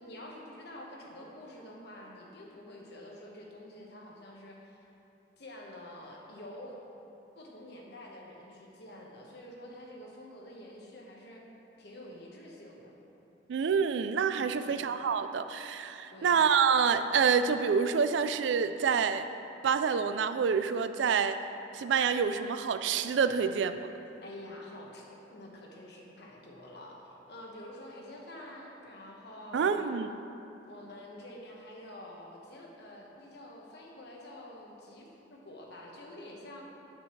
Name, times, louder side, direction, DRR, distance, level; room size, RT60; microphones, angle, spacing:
voice 1, 0.0-4.8 5.4-6.8 7.3-11.4 11.8-12.9 14.4-14.8 16.1-16.3 24.2-30.0 30.7-36.6, left 1 dB, 60° left, -1 dB, 1.2 m, -48 dB
voice 2, 13.5-19.2 19.6-21.4 21.7-23.8 29.5-30.1, right 6 dB, 75° right, 10 dB, 0.3 m, -27 dB
8.7 x 8.0 x 3.2 m, 3.0 s
head